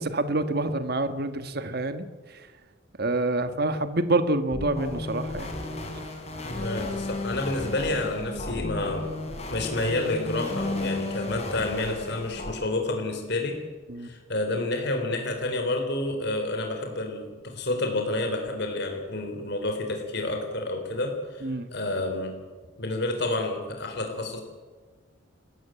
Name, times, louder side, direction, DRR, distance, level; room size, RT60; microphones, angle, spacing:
voice 1, 0.0-2.0 3.0-5.5 13.9-14.1 21.4-21.7, right 2 dB, 50° right, 10 dB, 1.4 m, -27 dB
sound 1, 4.5-12.5, left 2 dB, 30° left, 4.2 m, -34 dB
voice 2, 6.4-9.1 9.5-13.6 14.0-22.4 22.8-24.4, left 2 dB, 55° left, 4 dB, 3.7 m, -29 dB
29.0 x 14.0 x 9.0 m, 1.4 s
head